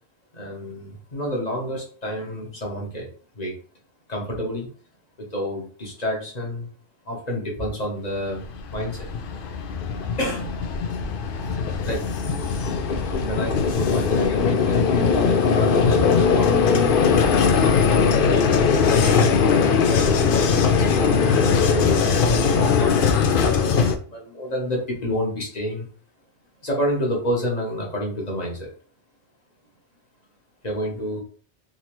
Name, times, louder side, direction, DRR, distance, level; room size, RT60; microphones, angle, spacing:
voice 1, 0.3-3.1 3.3-3.5 4.1-4.7 5.2-6.7 7.0-9.1 10.2-10.5 11.4-11.6 11.8-12.0 13.1-16.5 18.3-19.4 19.7-23.1 24.1-25.8 26.6-28.7 30.6-31.2, equal, 35° left, -2 dB, 1.1 m, -29 dB
Vehicle, 8.3-24.0, left 5 dB, 60° left, 0.6 m, -20 dB
3.9 x 2.8 x 3.0 m, 0.41 s
omnidirectional pair, 1.2 m